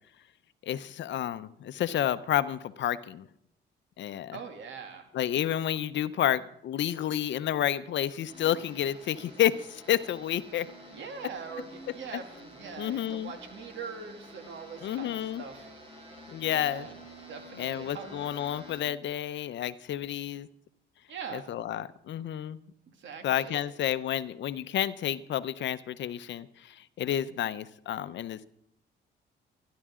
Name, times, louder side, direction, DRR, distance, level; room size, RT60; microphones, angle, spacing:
voice 1, 0.7-3.2 4.0-4.4 5.1-10.7 12.8-13.3 14.8-15.4 16.3-16.9 17.6-20.5 21.3-22.6 23.2-28.5, left 11 dB, 65° left, 14 dB, 0.7 m, -30 dB
voice 2, 4.3-5.1 10.9-15.7 16.5-17.0 17.3-18.2 21.1-21.4 22.9-23.6, right 6 dB, 70° right, 4 dB, 2.6 m, -42 dB
sound 1, 8.3-18.8, equal, 30° right, 5.4 m, -49 dB
24.5 x 11.5 x 3.7 m, 0.74 s
cardioid pair, 90°, 20 cm